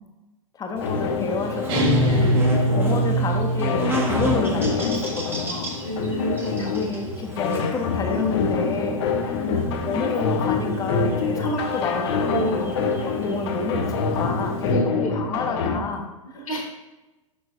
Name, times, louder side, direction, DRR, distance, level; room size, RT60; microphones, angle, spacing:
voice 1, 0.5-2.4 2.7-5.7 6.6-12.7 13.0-16.5, left 3 dB, 20° left, 3 dB, 0.9 m, -30 dB
sound 1, 0.8-15.8, left 5 dB, 50° left, 0.7 m, -26 dB
Buzz, 0.8-14.7, right 1 dB, 10° right, 1.0 m, -33 dB
sound 2, 1.7-4.3, right 1 dB, 40° right, 2.1 m, -22 dB
voice 2, 2.0-2.4 4.2-4.5 5.8-6.7 9.3-9.6 12.2-12.7 14.6-15.1 16.5-16.6, equal, 70° left, 0 dB, 1.9 m, -29 dB
6.4 x 5.8 x 2.7 m, 1.1 s
figure-of-eight pair, 95°, 18 cm